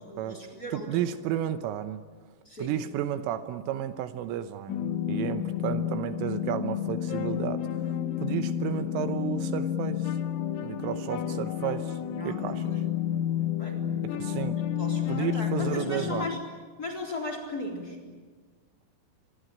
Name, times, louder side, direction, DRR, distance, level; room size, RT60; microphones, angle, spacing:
voice 1, 0.1-1.0 2.5-2.8 12.2-12.9 13.6-13.8 14.8-16.4 16.8-18.0, left 2 dB, 20° left, 4 dB, 3.6 m, -37 dB
voice 2, 0.7-2.1 2.6-10.1 10.6-12.0 12.3-12.8 14.0-14.6 15.1-16.3, right 11 dB, 80° right, 10 dB, 3.4 m, -32 dB
sound 1, 4.7-16.4, left 10 dB, 80° left, 3.8 m, -30 dB
26.5 x 23.0 x 8.9 m, 1.5 s
omnidirectional pair, 6.0 m